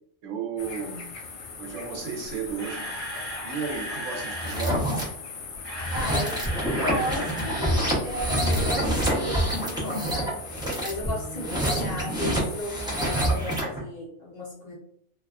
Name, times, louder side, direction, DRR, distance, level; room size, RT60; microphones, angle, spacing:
voice 1, 0.2-1.1 1.6-2.9 3.4-4.8, right 5 dB, 75° right, 2 dB, 0.9 m, -33 dB
sound 1, 0.6-13.4, left 5 dB, 75° left, 1.0 m, -41 dB
Camera, 2.3-4.7 5.4-7.7 8.0-8.1 8.6-8.7, equal, 45° right, 1.3 m, -36 dB
sound 2, 4.3-5.0 5.7-13.8, equal, 5° right, 0.3 m, -27 dB
voice 2, 5.9-6.4 6.8-10.4 10.8-14.7, left 1 dB, 50° left, -5 dB, 0.5 m, -35 dB
2.5 x 2.2 x 2.3 m, 0.67 s
omnidirectional pair, 1.4 m